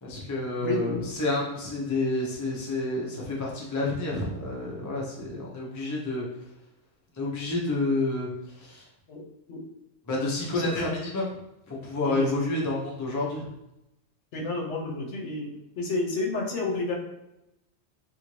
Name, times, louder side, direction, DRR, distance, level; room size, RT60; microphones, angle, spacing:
voice 1, 0.0-6.2 7.2-8.8 10.1-11.2 11.7-13.4, left 2 dB, 25° left, -3 dB, 0.4 m, -29 dB
voice 2, 0.6-1.1 9.1-9.7 10.4-11.0 12.0-12.3 14.3-15.5 15.8-16.9, left 2 dB, 70° left, -1 dB, 0.9 m, -31 dB
2.6 x 2.6 x 3.0 m, 0.89 s
omnidirectional pair, 1.3 m